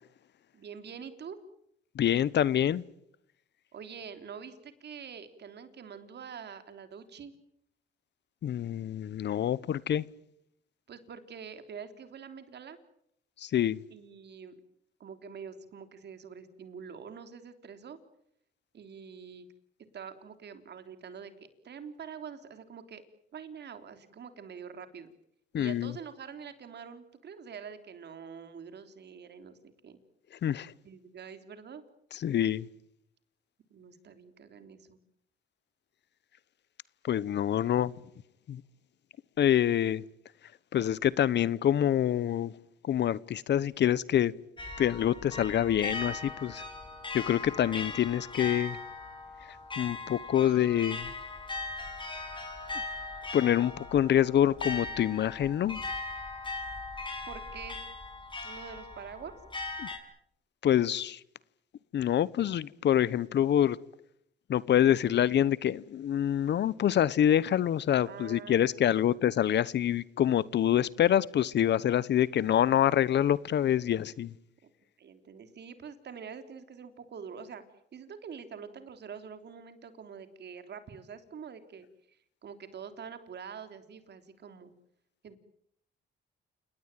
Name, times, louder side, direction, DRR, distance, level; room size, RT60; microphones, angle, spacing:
voice 1, 0.5-1.4 3.7-7.3 10.9-12.8 13.9-14.5 15.0-18.0 18.7-19.5 19.9-23.0 23.3-25.1 25.5-29.5 29.8-30.0 30.8-31.8 33.7-35.0 57.3-57.8 58.4-59.3 68.1-69.1 74.6-74.7 75.0-77.6 77.9-84.7 85.2-85.4, right 6 dB, 60° right, 3.4 m, -45 dB
voice 2, 1.9-2.8 8.4-10.1 13.4-13.8 25.5-25.9 30.4-30.7 32.2-32.7 37.0-37.9 38.5-38.6 39.4-40.0 40.7-42.5 42.8-44.3 44.8-46.6 47.1-48.8 49.8-51.1 53.3-55.8 59.8-59.9 60.6-61.2 61.9-63.8 64.5-74.3, left 10 dB, 60° left, 0.9 m, -26 dB
sound 1, 44.6-60.0, left 3 dB, 25° left, 6.9 m, -39 dB
29.0 x 18.5 x 9.1 m
cardioid pair, 90°, 20 cm